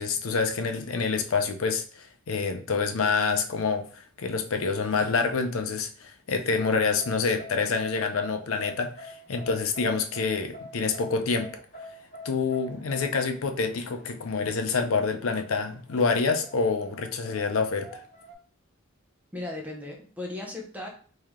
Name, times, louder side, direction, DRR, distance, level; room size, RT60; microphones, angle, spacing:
voice 1, 0.0-3.9 4.2-11.5 12.2-18.0, left 4 dB, 85° left, 7 dB, 0.6 m, -27 dB
sound 1, 6.4-18.3, left 1 dB, 35° left, 1.3 m, -46 dB
voice 2, 19.3-20.9, left 2 dB, 10° right, 0 dB, 0.7 m, -36 dB
3.2 x 2.8 x 3.6 m, 0.42 s
head